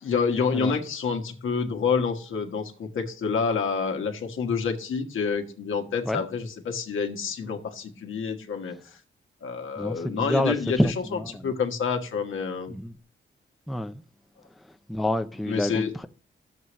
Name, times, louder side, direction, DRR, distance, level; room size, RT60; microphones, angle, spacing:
voice 1, 0.0-8.8 9.4-10.9 11.4-12.7 15.5-15.9, left 5 dB, 80° left, 1.3 m, -28 dB
voice 2, 9.8-11.5 12.7-12.9 13.7-14.0 14.9-16.1, left 1 dB, ahead, 0.4 m, -28 dB
11.0 x 7.3 x 3.1 m
wide cardioid pair, 110°, 20 cm